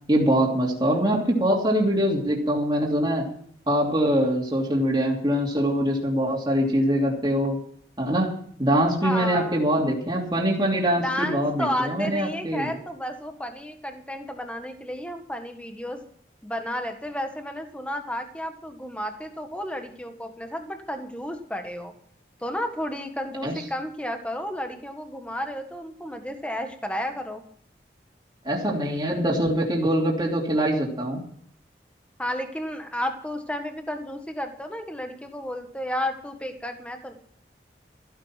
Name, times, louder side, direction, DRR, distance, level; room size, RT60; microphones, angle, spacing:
voice 1, 0.1-3.2 3.7-7.6 8.0-8.3 8.6-12.7 23.4-23.5 28.4-31.2, equal, 25° right, -3 dB, 2.9 m, -23 dB
voice 2, 9.0-9.8 11.0-16.0 16.4-21.9 22.4-27.4 32.2-37.1, equal, 5° left, 5 dB, 1.6 m, -32 dB
15.0 x 10.5 x 5.9 m, 0.63 s
head